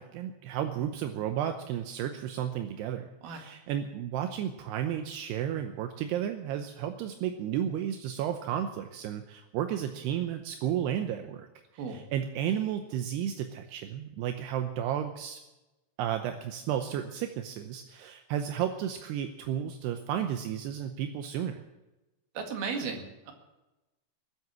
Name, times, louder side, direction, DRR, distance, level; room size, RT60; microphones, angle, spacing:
voice 1, 0.0-11.5 11.7-15.4 16.0-21.6, right 10 dB, 80° right, 6 dB, 2.5 m, -33 dB
voice 2, 22.4-23.3, right 5 dB, 60° right, 3 dB, 3.5 m, -35 dB
20.5 x 7.9 x 7.2 m, 1.0 s
omnidirectional pair, 5.5 m